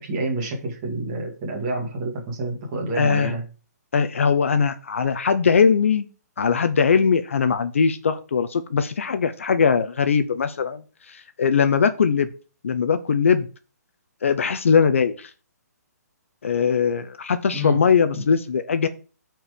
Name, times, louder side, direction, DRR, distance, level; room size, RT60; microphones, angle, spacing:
voice 1, 0.0-3.4 17.5-17.8 18.1-18.2, right 1 dB, 15° right, -1 dB, 2.3 m, -28 dB
voice 2, 3.0-3.3 3.9-6.1 6.4-10.8 11.1-12.3 12.6-13.5 14.2-15.3 16.4-18.9, left 6 dB, 45° left, 11 dB, 0.8 m, -20 dB
8.9 x 4.7 x 5.1 m, 0.35 s
hypercardioid pair, 180°, 9 cm